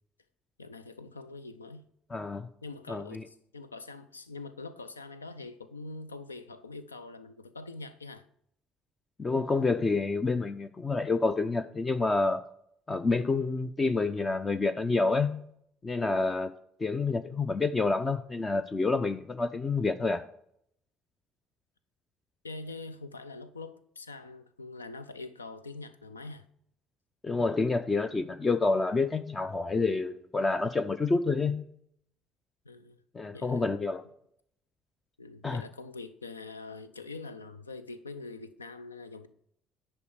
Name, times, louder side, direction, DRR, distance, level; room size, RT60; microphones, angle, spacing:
voice 1, 0.6-1.8 2.6-8.3 22.4-26.5 32.6-33.0 33.3-33.8 35.2-39.3, left 3 dB, 85° left, 0.5 m, -44 dB
voice 2, 2.1-2.5 2.9-3.3 9.2-12.4 12.9-15.5 15.8-16.5 16.8-20.2 27.2-31.6 33.1-34.0 35.4-35.6, left 3 dB, 25° left, 0.5 m, -28 dB
9.9 x 4.4 x 6.4 m
figure-of-eight pair, 55°, 0 cm